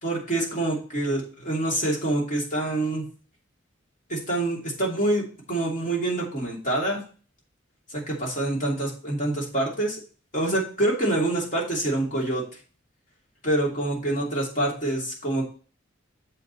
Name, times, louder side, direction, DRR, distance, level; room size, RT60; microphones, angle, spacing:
voice 1, 0.0-3.1 4.1-7.0 7.9-10.0 10.3-12.4 13.4-15.4, right 1 dB, 40° left, -2 dB, 2.8 m, -26 dB
7.5 x 5.1 x 4.1 m, 0.38 s
head